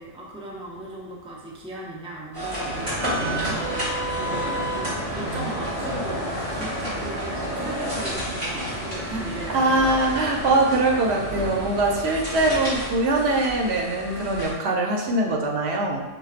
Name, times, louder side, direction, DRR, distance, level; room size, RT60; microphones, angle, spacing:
voice 1, 0.0-9.9, right 1 dB, 10° right, -4 dB, 0.4 m, -37 dB
sound 1, 2.3-14.5, equal, 30° right, 1.6 m, -30 dB
sound 2, 2.6-12.9, right 2 dB, 60° right, 0.8 m, -37 dB
voice 2, 9.5-16.0, right 2 dB, 85° right, 0 dB, 0.9 m, -22 dB
5.3 x 2.3 x 2.4 m, 1.1 s
omnidirectional pair, 1.1 m